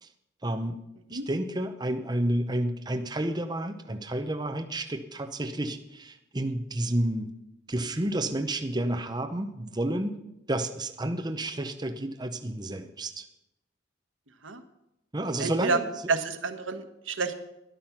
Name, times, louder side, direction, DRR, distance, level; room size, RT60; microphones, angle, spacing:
voice 1, 0.4-0.8 1.1-7.3 7.7-10.2 10.5-13.3 15.1-15.8, right 1 dB, 20° right, 6 dB, 0.8 m, -30 dB
voice 2, 15.4-15.8 16.1-17.4, right 4 dB, 90° right, 8 dB, 1.3 m, -29 dB
13.0 x 10.5 x 5.9 m, 0.86 s
head